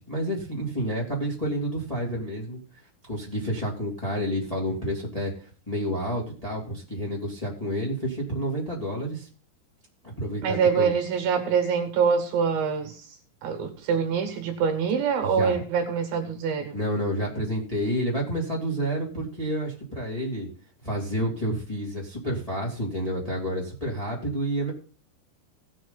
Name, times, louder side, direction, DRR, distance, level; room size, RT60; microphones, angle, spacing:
voice 1, 0.1-2.6 3.1-5.3 5.7-9.2 10.0-10.9 15.2-15.5 16.7-20.5 20.8-24.7, equal, 10° left, -4 dB, 2.4 m, -29 dB
voice 2, 10.4-16.8, right 6 dB, 70° right, 5 dB, 3.1 m, -25 dB
18.0 x 6.3 x 4.0 m, 0.41 s
omnidirectional pair, 4.6 m